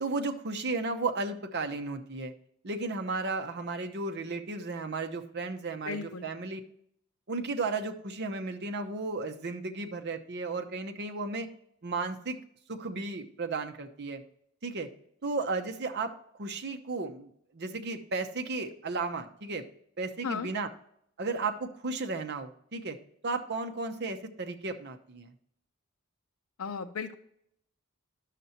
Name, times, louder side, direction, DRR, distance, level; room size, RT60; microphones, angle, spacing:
voice 1, 0.0-2.3 2.6-6.6 7.3-11.5 11.8-12.4 12.7-14.2 14.6-14.9 15.2-16.1 16.4-17.3 17.5-19.6 20.0-20.7 21.2-23.0 23.2-25.3, right 3 dB, 55° right, 5 dB, 0.8 m, -34 dB
voice 2, 5.9-6.3 20.2-20.5 26.6-27.2, left 5 dB, 80° left, 9 dB, 0.6 m, -35 dB
11.0 x 6.7 x 2.9 m, 0.71 s
head